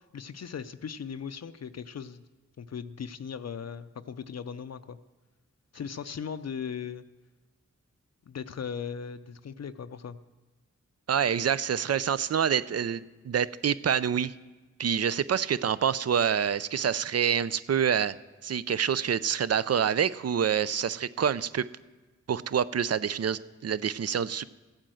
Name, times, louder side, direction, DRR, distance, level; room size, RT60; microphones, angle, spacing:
voice 1, 0.0-2.2 2.6-5.0 5.7-7.0 8.3-10.2, left 7 dB, 60° left, 10 dB, 0.5 m, -38 dB
voice 2, 11.1-14.3 14.8-18.1 18.4-21.6 22.3-24.4, right 8 dB, 55° right, 16 dB, 0.5 m, -27 dB
15.0 x 8.9 x 7.7 m, 1.2 s
cardioid pair, 60°, 30 cm